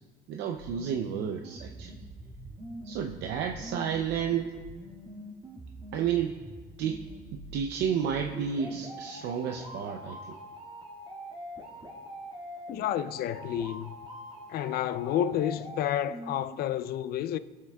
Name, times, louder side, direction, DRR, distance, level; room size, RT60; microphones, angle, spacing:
voice 1, 0.3-1.9 2.8-4.5 5.9-6.4 6.8-7.0 7.3-10.2, right 8 dB, 80° right, 0.6 m, -31 dB
sound 1, 0.6-16.6, equal, 35° right, 1.7 m, -44 dB
voice 2, 12.7-13.9 14.5-17.4, left 11 dB, 65° left, 0.4 m, -30 dB
19.0 x 7.5 x 2.3 m
cardioid pair, 110°, 17 cm